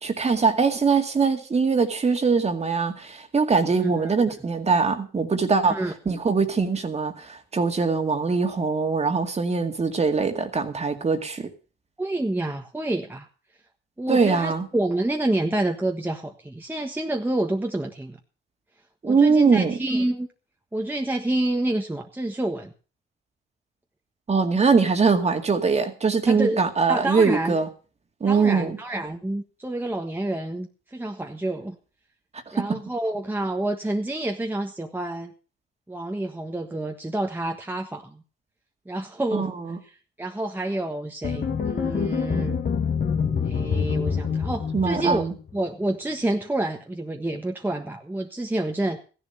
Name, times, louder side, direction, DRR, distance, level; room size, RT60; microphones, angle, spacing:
voice 1, 0.0-11.5 14.1-14.7 19.0-19.8 24.3-27.7 28.2-28.8 32.5-32.8 39.3-39.8 44.7-45.3, right 4 dB, 35° right, 6 dB, 2.1 m, -22 dB
voice 2, 3.8-4.1 5.7-5.9 12.0-13.3 14.0-18.2 19.0-20.3 20.7-22.7 26.3-27.6 28.3-31.8 32.5-35.3 35.9-38.2 38.8-39.5 40.2-42.6 43.4-45.3 45.5-49.0, right 1 dB, 10° right, 2 dB, 1.4 m, -28 dB
sound 1, 41.2-45.5, left 6 dB, 50° left, 1.9 m, -26 dB
14.5 x 11.0 x 5.5 m, 0.37 s
cardioid pair, 90°, 20 cm